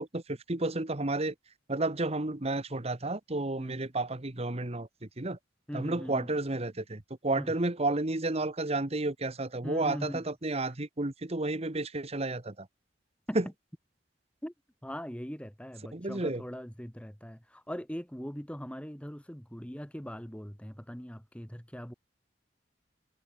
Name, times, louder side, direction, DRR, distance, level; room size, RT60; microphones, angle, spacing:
voice 1, 0.0-1.3 1.7-4.9 5.2-5.4 5.7-12.7 13.3-13.4 15.9-16.4, right 2 dB, 35° right, 1.5 m, -31 dB
voice 2, 5.7-6.3 7.4-7.6 9.6-10.3 10.6-10.7 13.3-13.4 14.4-14.5 14.8-21.9, equal, 5° left, 3.4 m, -41 dB
head